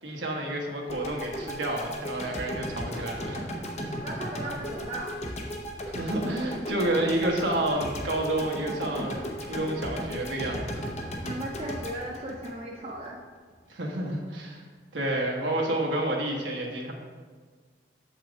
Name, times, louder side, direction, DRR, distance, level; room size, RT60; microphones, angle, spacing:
voice 1, 0.0-3.4 5.8-10.8 13.7-14.6 14.9-16.9, right 1 dB, 85° right, -1 dB, 1.2 m, -30 dB
sound 1, 0.9-13.1, equal, 40° left, 0.8 m, -36 dB
voice 2, 4.0-5.1 11.2-13.2, right 1 dB, 35° right, -2 dB, 0.6 m, -36 dB
7.4 x 5.7 x 3.5 m, 1.5 s
head